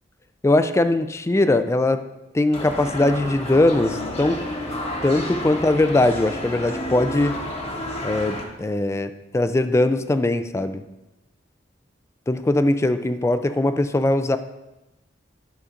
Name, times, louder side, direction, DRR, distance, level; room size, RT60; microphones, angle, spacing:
voice 1, 0.4-2.1 2.3-4.5 5.0-7.3 8.0-10.8 12.3-14.4, left 2 dB, 15° left, 11 dB, 0.3 m, -20 dB
sound 1, 2.5-8.4, left 1 dB, 35° left, 1.1 m, -31 dB
11.0 x 6.5 x 2.5 m, 0.97 s
head